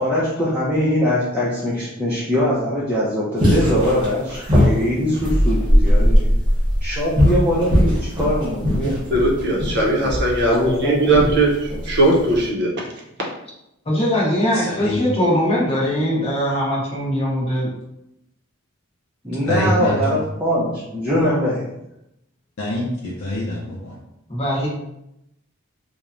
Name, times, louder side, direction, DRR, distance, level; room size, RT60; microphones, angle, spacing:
voice 1, 0.0-6.2 6.8-7.9 8.2-9.0 10.5-11.2 19.2-21.6, equal, 5° right, -8 dB, 0.4 m, -22 dB
sound 1, 3.4-12.4, equal, 20° right, 0.9 m, -19 dB
voice 2, 8.8-12.7, right 2 dB, 55° right, -1 dB, 0.6 m, -19 dB
voice 3, 13.9-17.7 24.3-24.7, equal, 30° left, -5 dB, 0.8 m, -21 dB
voice 4, 14.5-15.0 19.5-20.2 22.6-24.0, left 1 dB, 80° left, -4 dB, 0.5 m, -25 dB
3.0 x 2.1 x 2.5 m, 0.84 s
head